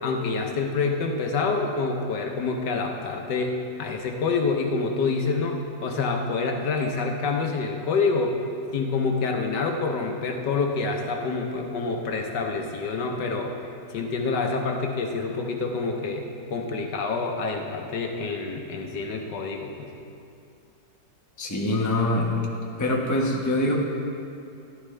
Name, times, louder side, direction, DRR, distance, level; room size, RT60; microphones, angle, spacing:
voice 1, 0.0-8.4 8.7-13.6 13.9-19.9, left 4 dB, 70° left, 3 dB, 1.4 m, -27 dB
voice 2, 21.4-22.5 22.8-23.7, left 1 dB, 10° left, -2 dB, 0.9 m, -24 dB
14.5 x 11.0 x 3.3 m, 2.5 s
omnidirectional pair, 2.0 m